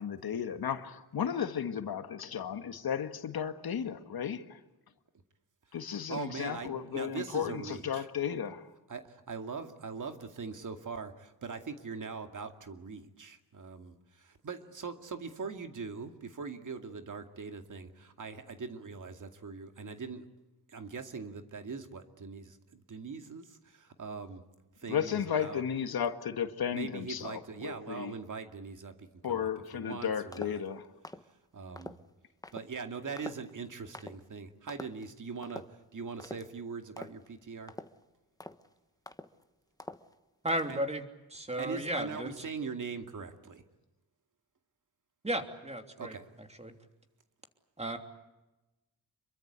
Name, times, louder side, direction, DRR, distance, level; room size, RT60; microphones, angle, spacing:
voice 1, 0.0-4.6 5.7-8.7 24.9-28.1 29.2-30.9, left 8 dB, 70° left, 1.8 m, -34 dB
voice 2, 6.1-8.1 8.9-20.3 20.7-24.4 24.8-25.6 26.7-30.6 31.5-32.0 32.5-35.6 35.9-37.7 40.7-40.8 41.6-43.6 46.0-46.3, right 5 dB, 50° right, 2.4 m, -41 dB
sound 1, 30.3-30.7 31.0-31.3 31.8-32.0 32.4-32.7 33.2-33.5 33.9-34.2 34.7-35.1 35.4-35.8 36.2-36.5 37.0-37.3 37.7-38.0 38.4-38.7 39.1-39.4 39.8-40.1 40.5-40.8, left 2 dB, 10° left, 1.3 m, -45 dB
voice 3, 40.4-41.0 41.3-42.3 45.2-46.1 46.6-46.7 47.8-48.0, right 1 dB, 15° right, 3.1 m, -34 dB
27.0 x 23.0 x 8.3 m
wide cardioid pair, 105°, 38 cm